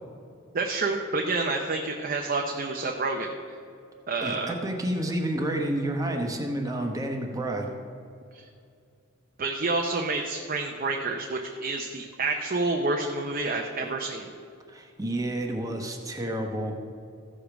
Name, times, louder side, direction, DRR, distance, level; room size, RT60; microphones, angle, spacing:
voice 1, 0.5-3.3 4.1-4.5 8.3-8.4 9.4-14.3, right 3 dB, 45° right, 2 dB, 0.6 m, -28 dB
voice 2, 4.2-7.7 14.7-16.7, right 1 dB, 15° right, 2 dB, 1.0 m, -30 dB
14.5 x 5.0 x 6.0 m, 2.4 s
head